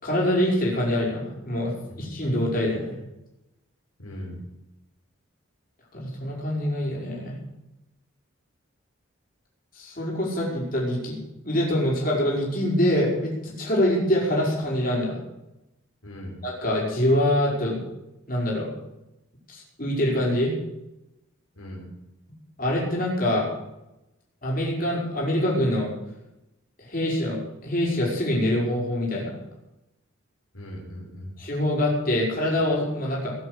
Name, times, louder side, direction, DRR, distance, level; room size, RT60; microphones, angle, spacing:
voice 1, 0.0-2.9 5.9-7.3 9.7-11.2 11.4-15.2 16.4-17.8 18.3-18.7 19.5-20.6 22.6-23.5 24.4-25.9 26.8-29.3 31.4-33.3, left 1 dB, 40° left, -4 dB, 5.4 m, -25 dB
voice 2, 4.0-4.4 16.0-16.4 21.6-21.9 30.5-31.3, left 1 dB, 85° left, -1 dB, 4.3 m, -39 dB
19.0 x 7.9 x 8.2 m, 0.95 s
head